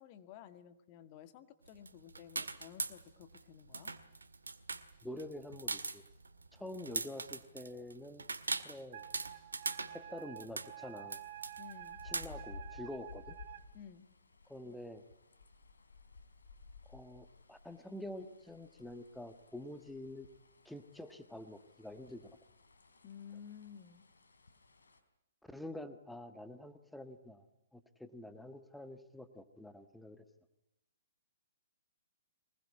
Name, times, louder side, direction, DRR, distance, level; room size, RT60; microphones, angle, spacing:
voice 1, 0.0-3.9 11.6-12.0 13.7-14.1 23.0-24.1, left 8 dB, 35° left, 11 dB, 1.8 m, -53 dB
sound 1, 1.7-3.4 3.7-12.3, right 3 dB, 85° right, 1.8 m, -40 dB
voice 2, 5.0-6.0 6.5-8.2 8.6-9.0 9.9-11.2 12.0-13.4 14.5-15.0 16.9-20.3 20.6-22.3 25.4-27.5 27.7-30.2, left 1 dB, ahead, 10 dB, 1.5 m, -47 dB
Wind instrument woodwind instrument, 8.9-13.6, right 11 dB, 50° right, 2.5 m, -50 dB
sound 2, 11.1-25.0, left 4 dB, 80° left, 3.9 m, -57 dB
24.0 x 20.0 x 9.8 m, 0.84 s
figure-of-eight pair, 125°, 0 cm